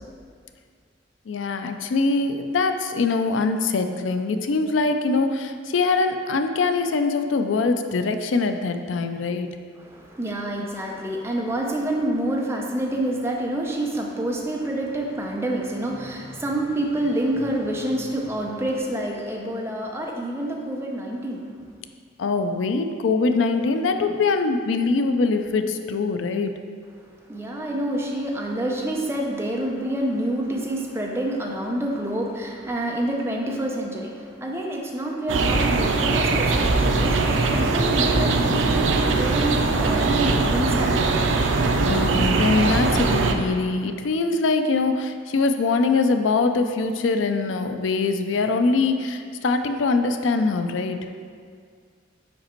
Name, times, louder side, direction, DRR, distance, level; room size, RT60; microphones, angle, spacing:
voice 1, 1.3-9.5 22.2-26.5 41.9-51.0, left 3 dB, 85° left, 7 dB, 0.4 m, -23 dB
voice 2, 9.8-21.7 27.3-41.0, right 1 dB, 15° right, 0 dB, 0.6 m, -27 dB
sound 1, 35.3-43.3, right 3 dB, 80° right, 0.5 m, -21 dB
5.2 x 5.1 x 4.4 m, 2.1 s
head